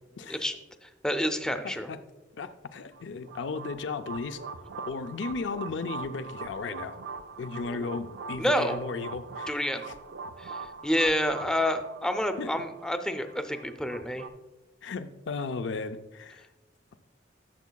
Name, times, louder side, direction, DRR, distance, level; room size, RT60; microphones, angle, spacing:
voice 1, 1.0-1.9 7.6-7.9 8.4-8.8 9.5-9.9 10.4-10.5 10.8-14.2, equal, 5° left, 0.5 m, -28 dB
voice 2, 1.6-2.0 2.4-4.4 4.9-7.0 7.4-9.6 12.4-12.5 14.8-16.4, left 4 dB, 70° left, 0.5 m, -35 dB
sound 1, 2.9-14.3, right 4 dB, 70° right, 0.4 m, -42 dB
12.0 x 7.1 x 2.3 m
head